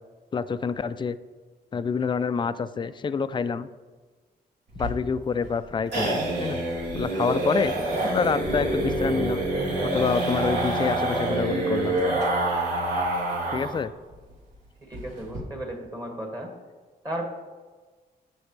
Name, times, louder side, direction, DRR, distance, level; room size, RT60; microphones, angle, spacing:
voice 1, 0.3-1.2 1.7-3.7 4.8-6.6 6.9-7.7 8.0-9.4 9.9-12.0 13.5-13.9, left 5 dB, 30° left, 12 dB, 0.4 m, -27 dB
sound 1, 4.7-13.8 14.1-14.2 14.5-14.6 14.9-15.4, right 2 dB, 80° right, 3.3 m, -26 dB
voice 2, 14.9-16.5 17.0-17.3, right 1 dB, 20° right, 1 dB, 2.0 m, -34 dB
15.5 x 6.1 x 3.3 m, 1.4 s
cardioid pair, 120°, 17 cm